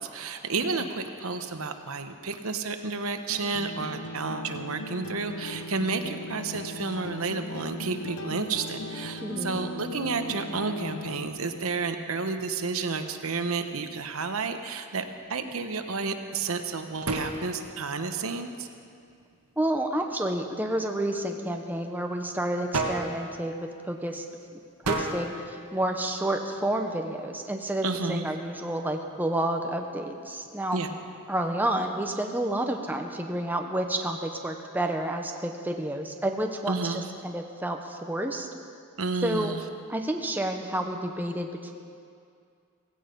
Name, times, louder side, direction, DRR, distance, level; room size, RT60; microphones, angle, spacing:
voice 1, 0.0-15.0 15.3-18.7 27.8-28.2 30.7-30.9 36.7-37.1 39.0-39.6, right 4 dB, 70° right, 7 dB, 1.0 m, -31 dB
sound 1, 3.3-11.3, left 1 dB, 70° left, 0.9 m, -38 dB
voice 2, 9.2-9.6 19.6-24.3 24.8-30.8 31.3-38.5 39.2-39.5 39.9-41.7, right 1 dB, 10° right, 3 dB, 0.9 m, -30 dB
sound 2, 15.0-31.9, right 2 dB, 90° right, 1.6 m, -39 dB
16.5 x 16.0 x 5.3 m, 2.3 s
head